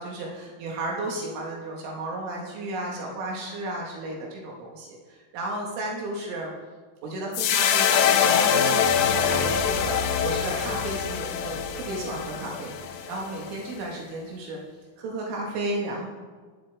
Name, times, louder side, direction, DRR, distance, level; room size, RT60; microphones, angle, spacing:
voice 1, 0.0-6.5 7.0-14.6 15.0-16.1, right 2 dB, 75° right, -2 dB, 4.2 m, -33 dB
sound 1, 7.3-13.7, left 7 dB, 80° left, 2.8 m, -24 dB
18.5 x 11.0 x 3.6 m, 1.5 s
omnidirectional pair, 5.9 m